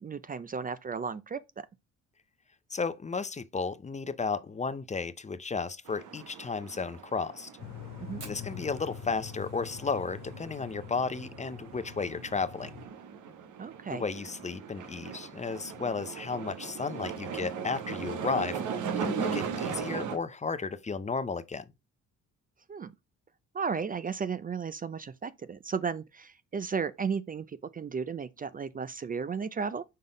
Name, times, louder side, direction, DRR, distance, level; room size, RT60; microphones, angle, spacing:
voice 1, 0.0-1.4 8.0-8.2 13.6-14.0 22.7-22.9 23.5-29.8, right 6 dB, 30° right, 0.5 m, -34 dB
voice 2, 2.7-7.5 8.2-12.7 13.9-18.6 19.0-21.6, left 4 dB, 25° left, 0.6 m, -33 dB
sound 1, 5.9-20.2, right 6 dB, 80° right, 1.1 m, -39 dB
sound 2, 7.6-12.9, left 8 dB, 65° left, 1.3 m, -45 dB
Fire, 8.2-12.7 12.9-13.0 13.3-13.4 13.8-14.2 14.7-14.8 15.9-16.0, right 4 dB, 55° right, 3.0 m, -53 dB
5.5 x 3.8 x 4.9 m
cardioid pair, 90°, 30 cm